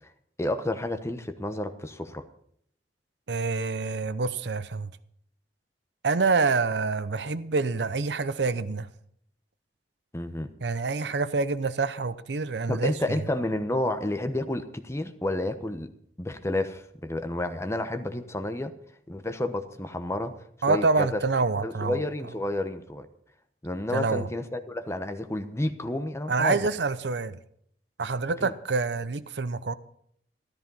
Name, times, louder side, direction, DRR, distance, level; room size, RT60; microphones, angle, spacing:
voice 1, 0.4-2.2 10.1-10.5 12.7-15.9 16.2-18.7 19.1-20.3 20.7-21.2 21.6-23.1 23.6-26.7 28.4-28.5, left 1 dB, 15° left, 1.0 m, -30 dB
voice 2, 3.3-4.9 6.0-8.9 10.6-13.2 20.6-22.0 23.9-24.3 26.3-27.4 28.0-29.7, right 4 dB, 75° right, 0.7 m, -27 dB
13.5 x 13.5 x 5.5 m
head